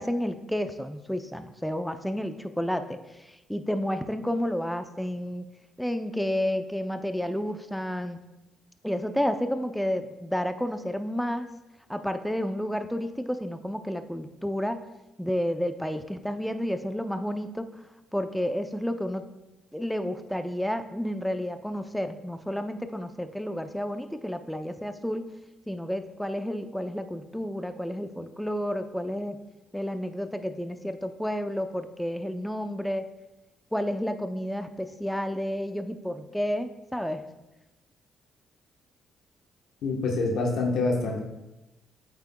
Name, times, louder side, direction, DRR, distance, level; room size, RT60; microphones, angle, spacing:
voice 1, 0.0-5.5 5.8-8.2 8.8-11.5 11.9-14.8 15.2-17.7 18.1-19.3 19.7-25.3 25.7-29.4 29.7-33.1 33.7-37.2, equal, ahead, 9 dB, 0.5 m, -31 dB
voice 2, 39.8-41.2, left 3 dB, 75° left, 0 dB, 1.1 m, -26 dB
8.2 x 8.1 x 2.3 m, 1.0 s
cardioid pair, 90°, 0 cm